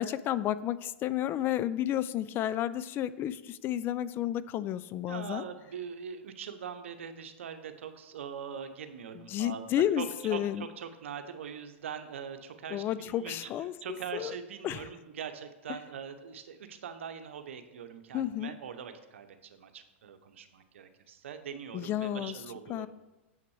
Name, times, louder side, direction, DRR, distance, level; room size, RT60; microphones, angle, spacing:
voice 1, 0.0-5.4 9.1-10.7 12.7-14.3 14.6-14.9 18.1-18.5 21.7-22.4 22.7-22.9, left 12 dB, 35° left, 16 dB, 0.3 m, -31 dB
voice 2, 5.1-13.5 13.8-22.9, right 7 dB, 80° right, 9 dB, 0.8 m, -42 dB
7.2 x 5.9 x 4.8 m, 1.0 s
hypercardioid pair, 120°, 7 cm